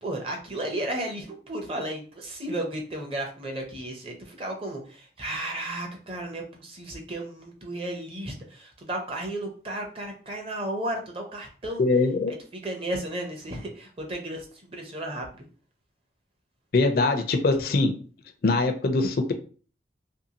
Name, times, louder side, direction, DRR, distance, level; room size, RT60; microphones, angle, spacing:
voice 1, 0.0-11.8 12.5-15.5, right 1 dB, 30° right, 2 dB, 0.6 m, -34 dB
voice 2, 11.8-12.4 16.7-17.9 18.4-19.3, left 3 dB, 55° left, 6 dB, 0.4 m, -22 dB
2.7 x 2.6 x 2.8 m, 0.40 s
head